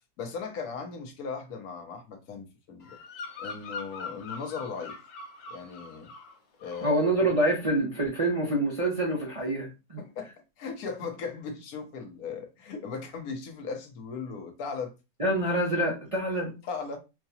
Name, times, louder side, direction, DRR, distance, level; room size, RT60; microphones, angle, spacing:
voice 1, 0.2-3.0 3.4-5.0 5.5-6.1 6.6-6.9 10.0-14.9 16.6-17.0, left 5 dB, 60° left, 1.2 m, -37 dB
Bird vocalization bird call bird song, 2.8-6.4 6.6-7.0, left 4 dB, 75° left, 1.5 m, -42 dB
voice 2, 6.8-10.0 15.2-16.5, right 1 dB, 30° right, 0.6 m, -26 dB
4.7 x 2.2 x 2.7 m
omnidirectional pair, 1.9 m